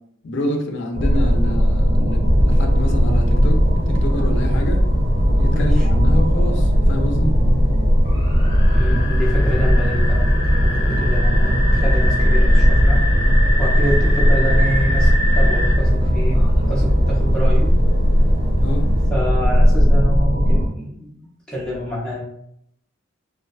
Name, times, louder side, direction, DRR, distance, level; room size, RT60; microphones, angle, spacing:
voice 1, 0.2-3.6 3.9-4.9 5.3-7.4 18.6-18.9, left 1 dB, 60° left, 3 dB, 0.4 m, -27 dB
sound 1, 0.9-20.7, equal, 85° right, 0.5 m, -17 dB
sound 2, 2.2-19.1, equal, 45° right, 1.0 m, -27 dB
voice 2, 5.5-5.9 8.7-13.0 13.6-17.8 19.1-21.2 21.5-22.2, equal, 5° left, -6 dB, 0.6 m, -27 dB
2.4 x 2.2 x 2.3 m, 0.73 s
head